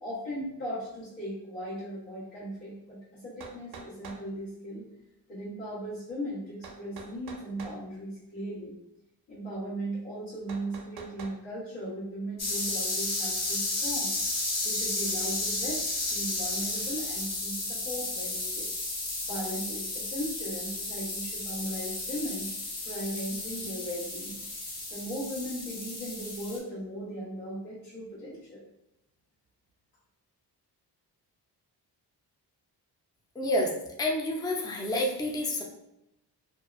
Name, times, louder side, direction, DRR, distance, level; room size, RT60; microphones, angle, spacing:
voice 1, 0.0-4.9 5.3-8.7 9.3-14.1 14.6-17.6 17.8-18.7 19.2-22.5 22.8-24.4 24.9-28.6, equal, 90° left, -11 dB, 1.2 m, -37 dB
sound 1, 2.9-3.0 3.4-4.3 6.6-7.8 10.5-11.4, right 4 dB, 60° right, 0.5 m, -45 dB
sound 2, 12.4-26.6, left 2 dB, 40° left, 0.8 m, -33 dB
voice 2, 33.4-35.6, left 1 dB, 10° left, -1 dB, 0.4 m, -29 dB
2.6 x 2.3 x 2.4 m, 0.87 s
cardioid pair, 75°, 43 cm